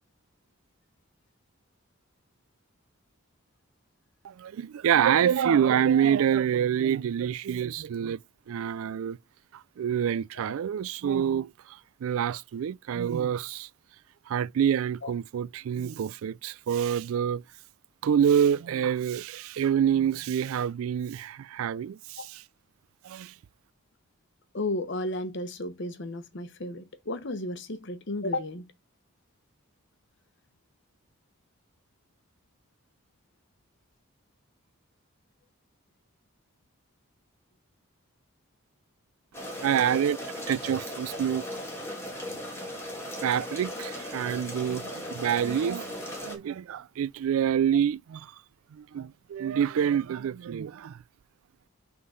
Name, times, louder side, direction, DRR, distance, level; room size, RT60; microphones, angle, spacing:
voice 1, 4.2-8.2 8.5-9.2 9.5-13.7 14.3-17.4 18.0-22.2 23.0-23.3 39.6-40.2 40.5-41.4 43.2-48.3 48.7-51.0, right 8 dB, 70° right, 0.3 m, -27 dB
voice 2, 24.5-28.7, left 2 dB, 55° left, 0.9 m, -33 dB
sound 1, 39.3-46.4, left 1 dB, 10° left, 1.8 m, -37 dB
6.2 x 3.8 x 5.5 m
head